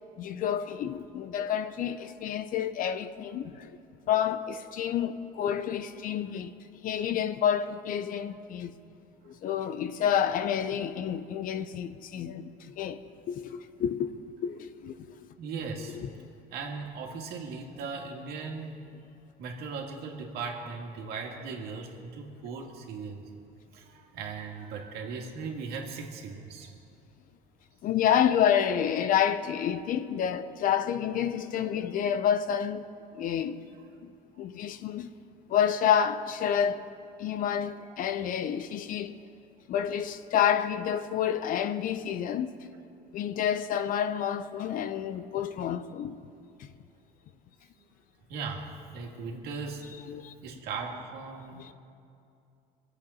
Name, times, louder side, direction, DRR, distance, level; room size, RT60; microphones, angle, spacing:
voice 1, 0.2-3.7 4.1-6.5 6.8-8.7 9.3-13.0 13.3-14.1 14.4-15.0 15.9-16.1 27.8-32.8 33.1-33.6 34.0-35.1 35.5-36.8 37.2-39.2 39.7-42.5 43.1-46.2 50.1-50.3 51.6-51.7, left 9 dB, 55° left, 0.7 m, -29 dB
voice 2, 15.4-16.0 16.5-18.9 19.4-23.2 23.7-26.7 34.3-34.5 37.9-38.0 48.3-49.9 50.4-51.6, right 4 dB, 70° right, 2.2 m, -38 dB
23.0 x 8.2 x 5.7 m
cardioid pair, 110°, 17 cm